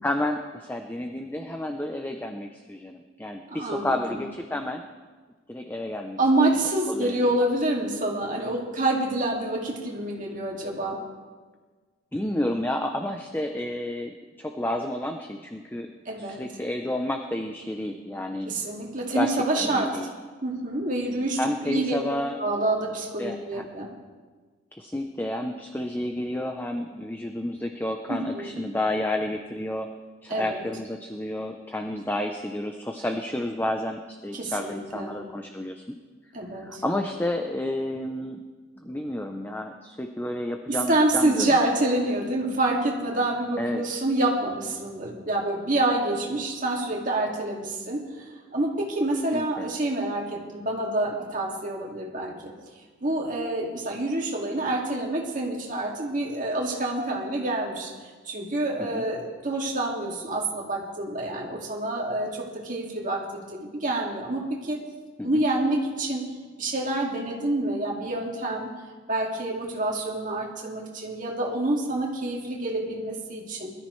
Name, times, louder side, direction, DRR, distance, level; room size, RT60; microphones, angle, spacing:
voice 1, 0.0-4.8 5.5-6.5 6.9-7.3 12.1-15.9 16.1-18.5 19.1-19.3 19.6-20.1 21.4-22.4 23.2-23.6 24.7-29.9 30.2-35.8 36.6-38.4 38.8-41.5 43.6-43.8 49.3-49.7 58.8-59.1 65.2-65.4, left 1 dB, 10° left, 4 dB, 0.6 m, -30 dB
voice 2, 3.5-4.2 6.2-11.0 16.1-16.4 18.5-19.9 20.4-22.0 22.4-23.9 28.1-28.6 30.3-30.6 34.3-35.2 36.3-36.8 40.7-52.5 53.0-57.9 58.2-64.8 65.2-66.2 66.6-68.7 69.1-73.7, right 2 dB, 40° right, -1 dB, 2.3 m, -27 dB
21.5 x 13.0 x 3.2 m, 1.4 s
head